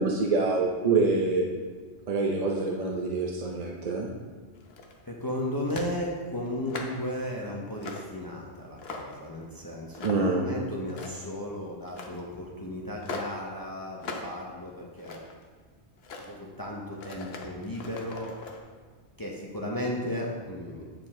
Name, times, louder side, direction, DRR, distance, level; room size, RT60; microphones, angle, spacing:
voice 1, 0.0-1.4 2.1-4.1 10.0-10.4, right 3 dB, 45° right, 0 dB, 0.6 m, -26 dB
sound 1, 4.6-5.1 5.7-6.0 6.5-7.1 7.8-8.1 8.6-9.3 9.9-10.4 10.8-11.3 11.9-12.2 13.0-13.4 14.0-14.3 14.7-15.4 16.0-16.3 16.9-18.6, left 3 dB, 60° left, 1.0 m, -40 dB
voice 2, 5.1-15.2 16.2-18.4 19.2-20.8, left 1 dB, 20° left, -2 dB, 0.8 m, -35 dB
9.1 x 5.0 x 3.6 m, 1.5 s
omnidirectional pair, 1.2 m